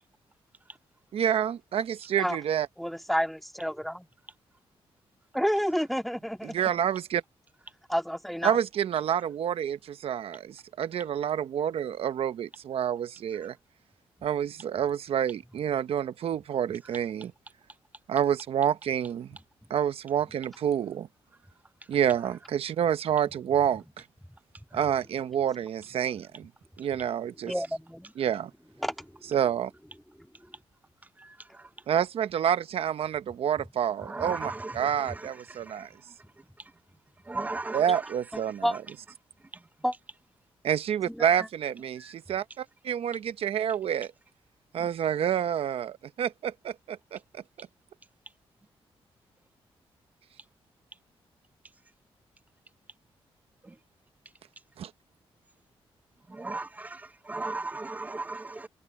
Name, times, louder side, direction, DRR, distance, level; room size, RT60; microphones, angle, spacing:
voice 1, 1.1-2.7 6.4-7.2 8.4-13.6 14.2-17.3 18.1-19.4 19.7-21.1 21.9-24.0 24.7-26.5 26.8-27.5 28.2-28.5 29.3-29.7 31.9-35.9 37.7-38.8 40.6-44.1 44.7-47.7 54.8-54.9, right 9 dB, 75° right, 0.9 m, -28 dB
voice 2, 2.8-4.1 5.3-6.7 7.9-8.6 24.7-24.8 27.4-28.1 28.8-29.1 38.3-38.7 39.8-39.9 41.1-41.3, equal, ahead, 2.2 m, -30 dB
voice 3, 34.1-34.7 37.3-37.8 56.3-57.0 57.3-58.7, right 3 dB, 15° right, 0.6 m, -35 dB
wide cardioid pair, 125°, 10 cm